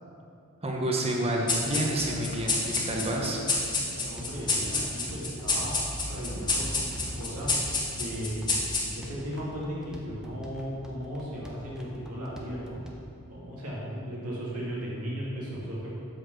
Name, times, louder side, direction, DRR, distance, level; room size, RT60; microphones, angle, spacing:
voice 1, 0.6-3.4, right 1 dB, 25° right, -1 dB, 1.0 m, -29 dB
sound 1, 1.5-9.2, left 3 dB, 20° left, 1.4 m, -30 dB
voice 2, 3.6-5.7 6.1-7.5 8.0-12.8 13.3-15.9, equal, 80° right, -6 dB, 2.1 m, -36 dB
sound 2, 4.2-12.9, equal, 5° right, 0.7 m, -47 dB
7.9 x 4.3 x 6.5 m, 2.5 s
head